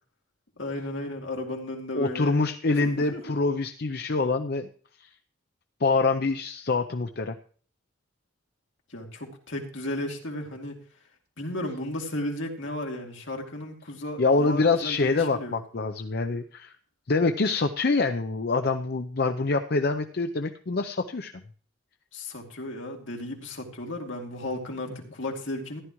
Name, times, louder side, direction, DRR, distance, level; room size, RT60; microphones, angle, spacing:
voice 1, 0.6-2.4 2.8-3.4 8.9-10.8 11.4-15.6 22.1-25.8, left 1 dB, 75° left, 1 dB, 2.5 m, -34 dB
voice 2, 1.9-4.7 5.8-7.4 14.2-16.7 17.1-21.3, left 3 dB, 50° left, 7 dB, 0.6 m, -25 dB
14.5 x 11.0 x 3.1 m, 0.43 s
head